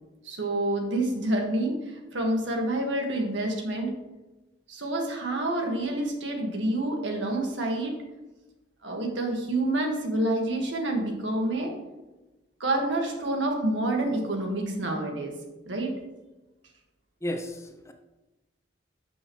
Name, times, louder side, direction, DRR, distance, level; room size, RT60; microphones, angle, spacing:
voice 1, 0.2-4.0 4.7-8.0 8.8-11.8 12.6-15.3 15.7-15.9, right 1 dB, 80° right, 1 dB, 1.7 m, -28 dB
voice 2, 17.2-17.9, left 1 dB, 15° left, 5 dB, 0.6 m, -33 dB
12.5 x 6.3 x 3.1 m, 1.1 s
head